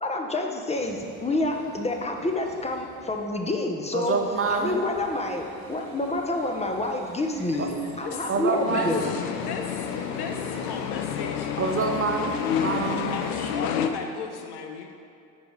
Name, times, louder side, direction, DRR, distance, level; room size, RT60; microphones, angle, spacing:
voice 1, 0.0-4.2 4.5-9.0 12.5-12.6, left 2 dB, 15° left, 3 dB, 0.9 m, -28 dB
sound 1, 0.7-3.5 4.0-13.5, right 2 dB, 90° right, 1.5 m, -48 dB
voice 2, 3.9-4.8 7.6-7.7 8.3-9.0 11.6-13.2, right 4 dB, 30° right, 4 dB, 0.7 m, -27 dB
voice 3, 7.5-8.3 8.6-9.0 9.3-11.9 13.1-14.9, left 6 dB, 65° left, 4 dB, 0.8 m, -37 dB
sound 2, 8.7-13.9, left 8 dB, 85° left, 0.5 m, -29 dB
9.3 x 5.2 x 3.2 m, 2.6 s
hypercardioid pair, 60°, 43 cm